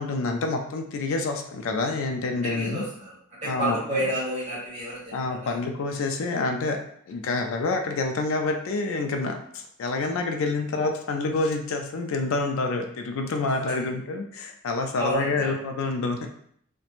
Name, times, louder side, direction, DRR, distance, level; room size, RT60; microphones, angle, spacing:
voice 1, 0.0-2.8 3.4-4.1 5.1-6.8 7.1-16.2, left 3 dB, 70° left, 4 dB, 0.3 m, -27 dB
voice 2, 2.4-3.1 3.4-5.5 14.9-15.5, right 1 dB, 35° right, -7 dB, 1.4 m, -30 dB
2.9 x 2.1 x 2.4 m, 0.65 s
head